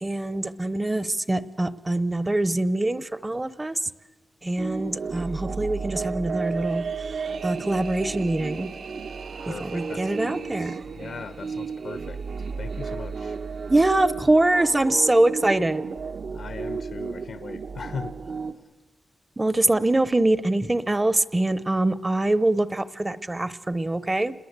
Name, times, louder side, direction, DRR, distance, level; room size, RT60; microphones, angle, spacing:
voice 1, 0.0-3.8 4.4-6.9 7.4-8.7 9.5-10.7 13.7-15.8 19.4-24.3, right 2 dB, 15° right, 16 dB, 0.7 m, -23 dB
sound 1, 4.6-18.5, right 5 dB, 65° right, 1.0 m, -33 dB
sound 2, 6.4-10.9, right 5 dB, 85° right, 2.0 m, -43 dB
voice 2, 9.4-13.4 16.3-18.3, left 5 dB, 65° left, 11 dB, 0.9 m, -39 dB
28.0 x 21.5 x 8.2 m, 1.2 s
wide cardioid pair, 170°, 0 cm